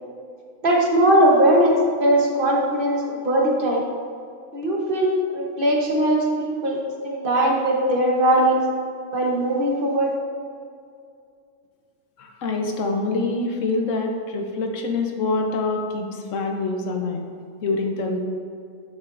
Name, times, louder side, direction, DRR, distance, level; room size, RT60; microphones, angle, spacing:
voice 1, 0.6-3.8 4.5-8.6 9.1-10.1, right 1 dB, 40° right, -2 dB, 1.2 m, -20 dB
voice 2, 12.2-16.1 16.3-17.2 17.6-18.2, left 3 dB, 60° left, 3 dB, 1.1 m, -25 dB
9.3 x 6.7 x 2.6 m, 2.3 s
omnidirectional pair, 1.6 m